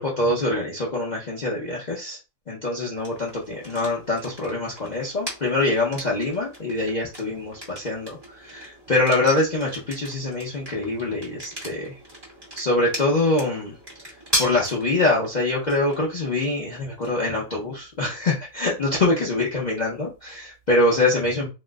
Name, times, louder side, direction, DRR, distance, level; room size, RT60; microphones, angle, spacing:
voice 1, 0.0-2.2 2.5-11.9 12.5-13.7 14.4-21.5, left 2 dB, 85° left, -3 dB, 0.4 m, -24 dB
sound 1, 3.0-20.7, equal, 20° right, 0.9 m, -38 dB
2.9 x 2.0 x 3.4 m, 0.28 s
omnidirectional pair, 1.8 m